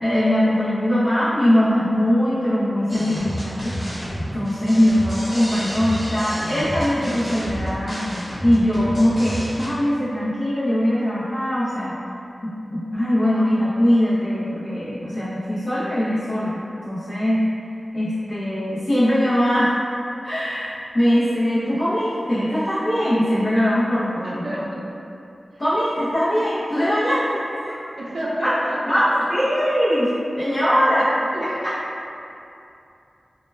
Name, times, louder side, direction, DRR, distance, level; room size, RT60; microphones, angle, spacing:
voice 1, 0.0-3.7 4.3-8.0 8.4-12.0 12.4-16.6 16.8-17.4 17.9-19.7 20.2-24.7 25.6-27.7 28.4-28.5 28.9-30.1 30.4-31.1, equal, 40° left, -12 dB, 0.5 m, -21 dB
sound 1, 2.9-9.7, equal, 15° left, 1.2 m, -30 dB
voice 2, 24.2-24.9 28.0-29.0 31.3-31.5, right 1 dB, 65° right, -6 dB, 0.5 m, -30 dB
2.2 x 2.1 x 3.1 m, 2.7 s
wide cardioid pair, 60°, 0 cm